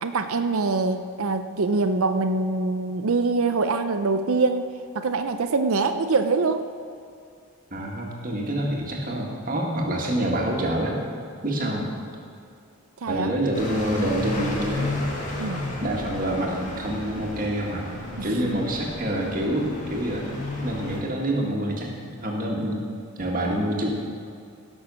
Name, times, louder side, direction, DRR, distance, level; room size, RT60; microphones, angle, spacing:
voice 1, 0.0-4.7 4.9-6.7 13.0-13.3 15.4-15.6 18.2-18.6, right 3 dB, 75° right, 8 dB, 0.6 m, -24 dB
voice 2, 7.7-11.0 11.4-11.9 13.1-14.9 15.8-17.9 18.2-20.3 20.6-21.9 22.2-22.8 23.2-23.9, right 1 dB, 40° right, -1 dB, 1.9 m, -26 dB
sound 1, 13.5-21.0, left 1 dB, 35° left, 1.8 m, -32 dB
17.0 x 6.3 x 6.3 m, 2.4 s
head